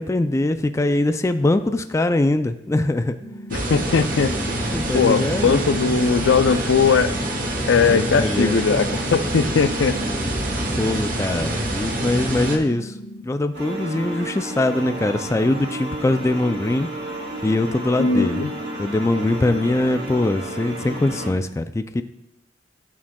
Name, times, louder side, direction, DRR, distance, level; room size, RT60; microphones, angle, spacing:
voice 1, 0.1-3.2 4.7-5.6 7.9-8.6 10.6-12.9 13.2-16.9 17.4-18.4 18.8-22.0, left 2 dB, 15° left, 9 dB, 0.3 m, -22 dB
sound 1, 3.2-13.2, equal, ahead, 1.1 m, -38 dB
voice 2, 3.5-4.3 4.9-7.1 7.7-10.0 18.0-18.5, left 5 dB, 85° left, 11 dB, 0.5 m, -19 dB
sound 2, 3.5-12.6, right 1 dB, 50° right, 1.2 m, -26 dB
sound 3, 13.5-21.3, right 1 dB, 70° right, 2.9 m, -32 dB
15.5 x 6.1 x 2.3 m, 0.85 s
head